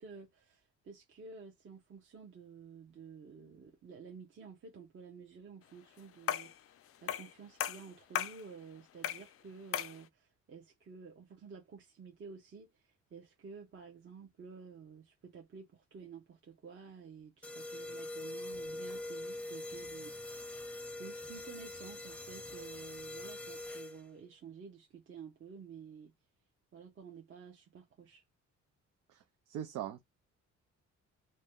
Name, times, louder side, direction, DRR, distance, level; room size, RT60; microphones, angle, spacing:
voice 1, 0.0-6.8 7.0-20.4 21.0-26.1 26.7-28.2, right 5 dB, 40° right, 0.7 m, -52 dB
sound 1, 6.3-6.6 7.1-7.3 7.6-8.4 9.0-9.3 9.7-10.0, left 11 dB, 50° left, 0.4 m, -36 dB
sound 2, 17.4-24.2, left 2 dB, 5° left, 0.6 m, -43 dB
voice 2, 29.5-30.0, right 11 dB, 80° right, 0.6 m, -40 dB
2.7 x 2.1 x 3.4 m
cardioid pair, 90°, 30 cm